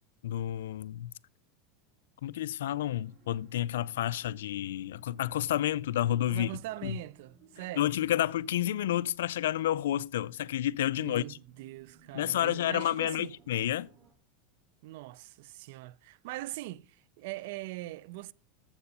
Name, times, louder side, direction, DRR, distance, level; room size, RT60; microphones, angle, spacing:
voice 1, 0.2-1.1 2.2-6.5 6.8-7.0 7.8-11.4 12.1-13.9, left 12 dB, 85° left, 0.3 m, -30 dB
sound 1, 2.7-14.1, right 4 dB, 45° right, 2.4 m, -61 dB
voice 2, 6.3-7.9 11.0-13.3 14.8-18.3, right 18 dB, 70° right, 0.3 m, -42 dB
7.5 x 7.0 x 5.4 m
supercardioid pair, 125°, 0 cm